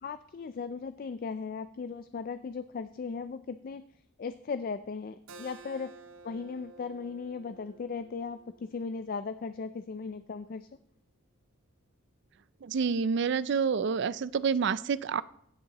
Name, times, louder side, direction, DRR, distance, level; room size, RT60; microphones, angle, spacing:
voice 1, 0.0-3.8 4.2-5.9 6.2-10.7, left 5 dB, 45° left, 12 dB, 0.3 m, -37 dB
Keyboard (musical), 5.3-10.5, right 4 dB, 80° right, 0.9 m, -53 dB
voice 2, 12.6-15.2, right 6 dB, 55° right, 17 dB, 0.4 m, -28 dB
15.5 x 6.5 x 2.9 m, 0.71 s
head